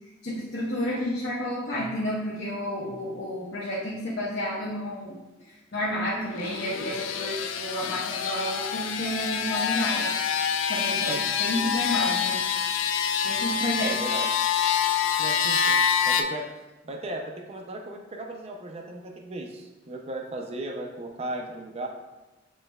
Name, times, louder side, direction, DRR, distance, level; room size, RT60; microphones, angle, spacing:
voice 1, 0.2-5.2 5.7-10.1 10.7-12.4 13.2-13.9, equal, 60° left, -7 dB, 0.8 m, -31 dB
sound 1, 6.3-16.2, left 7 dB, 85° left, 0.3 m, -26 dB
voice 2, 13.8-14.3 15.2-15.8 16.1-16.5 16.8-21.9, right 1 dB, 30° right, 2 dB, 0.4 m, -36 dB
7.5 x 3.2 x 2.2 m, 1.1 s
head